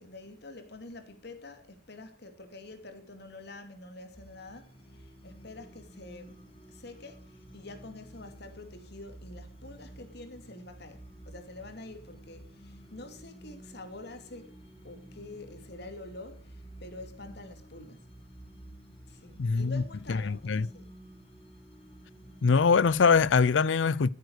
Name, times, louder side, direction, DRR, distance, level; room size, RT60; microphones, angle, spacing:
voice 1, 0.0-6.4 6.7-18.0 19.1-20.9, left 2 dB, 60° left, 2.7 m, -47 dB
sound 1, 4.1-23.5, right 1 dB, 30° left, 2.9 m, -51 dB
voice 2, 19.4-19.8 20.1-20.7 22.4-24.1, left 5 dB, 80° left, 0.5 m, -23 dB
14.0 x 9.4 x 6.6 m
head